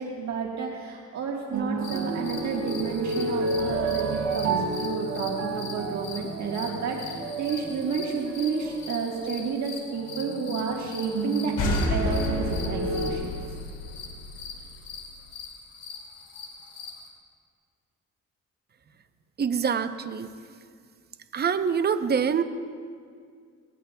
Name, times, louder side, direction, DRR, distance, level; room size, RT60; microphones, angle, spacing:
voice 1, 0.0-13.4, right 5 dB, 65° right, -1 dB, 1.6 m, -31 dB
sound 1, 1.5-13.1, right 3 dB, 90° right, 3.9 m, -31 dB
sound 2, 1.8-17.1, left 5 dB, 50° left, 2.9 m, -43 dB
sound 3, 11.6-15.1, left 2 dB, 85° left, 2.5 m, -30 dB
voice 2, 19.4-20.3 21.3-22.4, right 6 dB, 35° right, 9 dB, 0.7 m, -25 dB
22.5 x 18.5 x 2.3 m, 2.1 s
cardioid pair, 90°, 30 cm